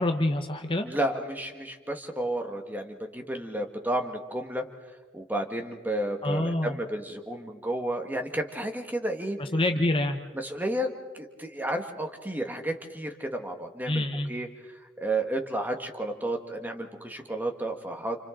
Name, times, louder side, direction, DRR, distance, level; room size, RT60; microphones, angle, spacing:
voice 1, 0.0-0.9 6.2-6.7 9.4-10.2 13.9-14.3, left 1 dB, 30° left, 5 dB, 0.9 m, -26 dB
voice 2, 0.8-4.6 5.1-9.4 10.3-14.5 15.0-18.2, right 1 dB, 10° right, 4 dB, 1.7 m, -32 dB
29.5 x 28.5 x 3.9 m, 1.4 s
head